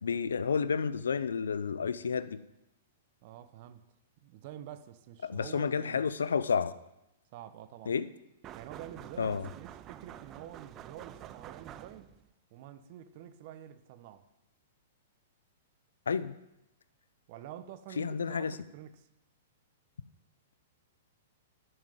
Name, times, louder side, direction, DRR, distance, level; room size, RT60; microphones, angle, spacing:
voice 1, 0.0-2.4 5.2-6.8 7.9-8.1 9.2-9.5 16.1-16.4 18.0-18.6, left 6 dB, 85° left, 0.6 m, -30 dB
voice 2, 3.2-3.9 4.2-6.1 7.3-8.0 8.5-12.1 12.5-14.3 17.3-19.1, right 10 dB, 50° right, 1.1 m, -48 dB
sound 1, 8.4-12.3, right 11 dB, 30° right, 0.6 m, -48 dB
11.0 x 6.2 x 9.2 m
hypercardioid pair, 115°, 0 cm